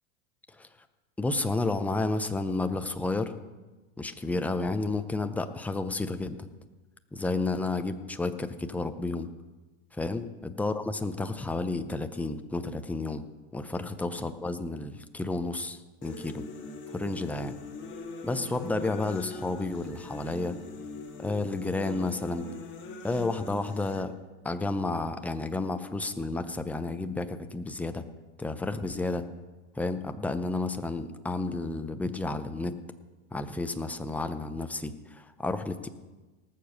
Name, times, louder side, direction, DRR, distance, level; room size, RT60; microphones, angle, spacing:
voice 1, 1.2-3.4 4.0-6.4 7.1-9.3 9.9-13.3 13.5-16.4 16.9-17.6 18.2-20.6 21.2-22.5 23.0-24.1 24.4-28.1 28.4-29.3 29.7-32.8 33.3-35.9, left 2 dB, 5° left, 8 dB, 0.7 m, -31 dB
sound 1, 16.0-24.0, left 3 dB, 25° left, 1.7 m, -42 dB
18.5 x 7.1 x 6.6 m, 1.2 s
hypercardioid pair, 115°, 42 cm